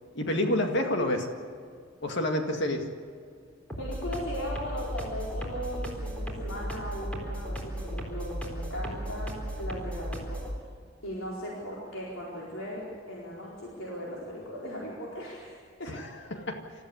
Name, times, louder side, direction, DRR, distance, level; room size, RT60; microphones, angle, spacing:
voice 1, 0.2-1.3 2.0-2.9 15.9-16.6, left 1 dB, 60° left, 4 dB, 2.0 m, -28 dB
sound 1, 3.7-10.5, right 1 dB, 5° left, 4.1 m, -36 dB
voice 2, 3.8-10.4 11.0-12.8 13.1-15.9, equal, 75° left, -5 dB, 4.4 m, -38 dB
28.0 x 14.5 x 8.3 m, 2.2 s
head